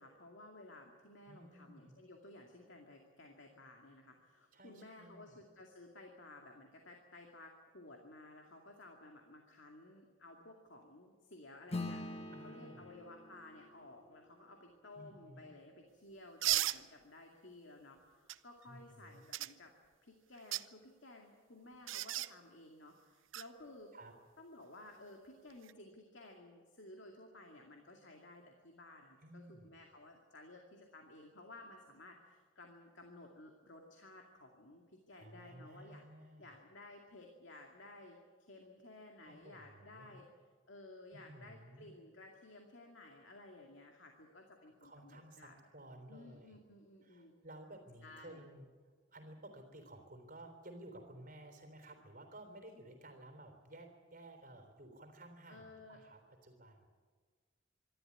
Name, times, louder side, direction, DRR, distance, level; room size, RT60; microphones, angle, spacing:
voice 1, 0.0-19.7 20.0-23.9 24.4-36.0 36.4-40.3 40.7-45.6 46.1-47.3 48.0-48.4 55.5-56.0, left 2 dB, 70° left, 2 dB, 2.3 m, -56 dB
voice 2, 1.3-2.0 4.5-5.4 12.3-12.9 15.0-15.5 18.7-19.2 23.9-24.1 29.2-29.7 35.1-36.6 39.3-40.2 41.1-41.9 44.8-46.6 47.0-48.7 49.1-56.9, right 1 dB, 45° right, 5 dB, 3.6 m, -55 dB
Acoustic guitar / Strum, 11.7-16.5, left 2 dB, 30° left, 1.4 m, -47 dB
sound 1, 16.4-16.8 18.3-18.4 19.3-19.5 20.3-20.7 21.9-22.3 23.3-23.5 25.5-25.7, right 14 dB, 75° right, 0.6 m, -34 dB
25.0 x 13.0 x 10.0 m, 1.5 s
head